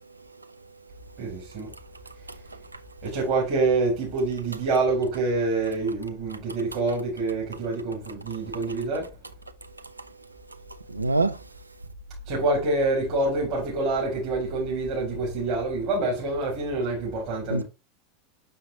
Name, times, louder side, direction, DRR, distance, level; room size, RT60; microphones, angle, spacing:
voice 1, 1.2-1.7 3.0-9.1 12.3-17.6, right 3 dB, 50° right, 3.3 m, -26 dB
voice 2, 10.9-11.4 17.5-17.6, right 2 dB, 85° right, 0.5 m, -26 dB
6.7 x 5.6 x 2.8 m
figure-of-eight pair, 85°, 0 cm